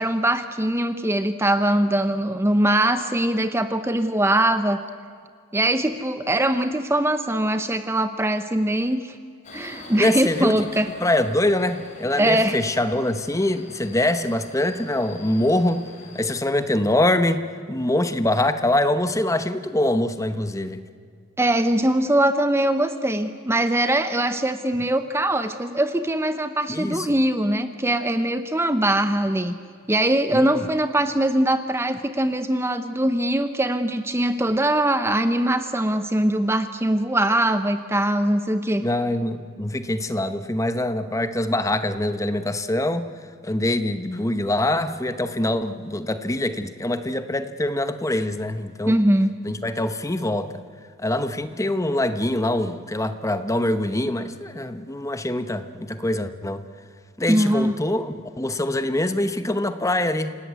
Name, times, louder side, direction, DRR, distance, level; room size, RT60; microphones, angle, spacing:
voice 1, 0.0-4.8 5.5-9.1 9.5-10.9 12.2-12.6 21.4-29.6 29.9-38.8 48.9-49.3 57.3-57.7, right 1 dB, 10° right, 10 dB, 0.8 m, -22 dB
Subway metro underground, 9.4-16.4, left 2 dB, 35° left, 4.5 m, -44 dB
voice 2, 10.0-10.7 11.0-15.8 16.1-20.8 26.7-27.1 30.3-30.7 38.8-43.1 43.4-49.0 49.4-50.6 51.0-56.6 57.2-60.4, left 1 dB, 15° left, 10 dB, 1.0 m, -24 dB
28.0 x 17.5 x 9.4 m, 2.2 s
head